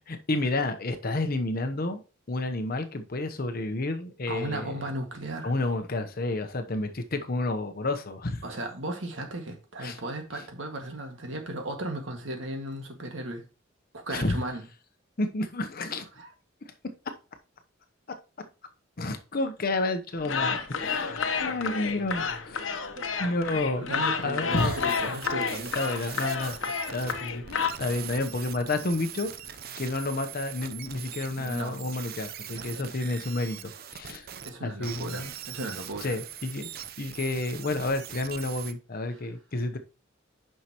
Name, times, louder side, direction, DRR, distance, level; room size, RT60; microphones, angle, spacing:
voice 1, 0.0-4.9 5.4-8.4 9.8-10.0 14.1-14.4 15.2-16.1 19.0-22.8 23.2-23.9 24.2-24.8 25.7-26.6 26.9-29.3 29.8-34.3 34.6-35.3 36.0-36.7 37.0-39.8, left 2 dB, 50° left, 0.9 m, -30 dB
voice 2, 4.3-5.5 8.4-13.4 13.9-14.6 16.1-16.3 23.0-23.3 23.7-26.0 27.1-27.2 31.4-31.9 32.5-32.9 34.4-36.2 39.1-39.2, right 1 dB, 70° right, 1.8 m, -36 dB
sound 1, 20.2-27.7, left 5 dB, 80° left, 0.9 m, -30 dB
sound 2, 24.5-34.5 34.8-38.7, right 9 dB, 50° right, 0.6 m, -42 dB
9.3 x 5.6 x 2.9 m
head